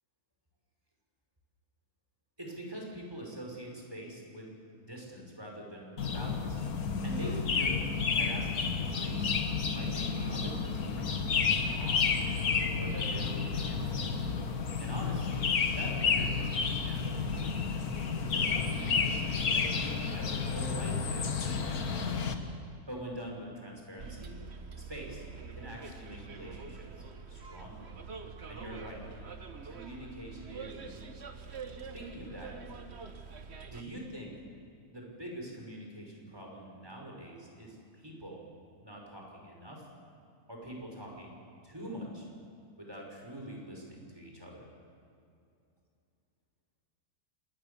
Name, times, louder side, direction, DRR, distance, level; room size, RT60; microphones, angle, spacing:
voice 1, 2.4-4.5 4.8-6.6 7.0-7.8 8.2-9.4 9.7-12.1 12.8-14.1 14.8-17.3 18.1-22.0 22.9-24.4 24.7-25.3 25.5-27.9 28.5-29.0 29.6-31.2 31.9-32.5 33.7-34.3 34.9-38.4 38.8-39.8 40.5-41.3 41.6-42.3 42.8-44.7, right 1 dB, 15° right, -1 dB, 5.5 m, -44 dB
sound 1, 6.0-22.4, left 5 dB, 75° left, 1.9 m, -31 dB
Bus, 24.0-33.8, right 5 dB, 45° right, 1.4 m, -45 dB
26.5 x 20.5 x 7.0 m, 2.5 s
omnidirectional pair, 1.6 m